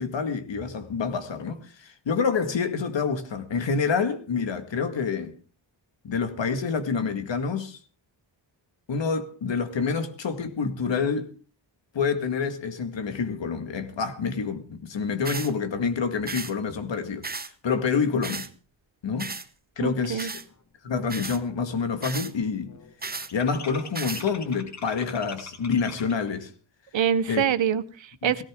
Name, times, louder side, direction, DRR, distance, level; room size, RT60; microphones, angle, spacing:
voice 1, 0.0-5.3 6.0-7.8 8.9-11.3 11.9-17.3 17.6-18.5 19.0-19.3 19.8-20.3 20.8-22.7 23.3-26.5 27.3-27.4 28.2-28.4, left 5 dB, 70° left, 2.0 m, -27 dB
sound 1, 15.2-15.5 16.3-16.5 17.2-17.5 18.2-18.5 19.2-19.5 20.2-20.4 21.1-21.4 22.0-22.3 23.0-23.3 23.9-24.2, right 4 dB, 20° right, 0.9 m, -34 dB
voice 2, 19.8-20.3 26.9-28.4, right 9 dB, 75° right, 1.1 m, -25 dB
sound 2, 20.7-20.8 21.1-21.5 21.7-26.4, left 4 dB, 35° left, 1.6 m, -44 dB
18.5 x 17.0 x 3.7 m
wide cardioid pair, 130°, 46 cm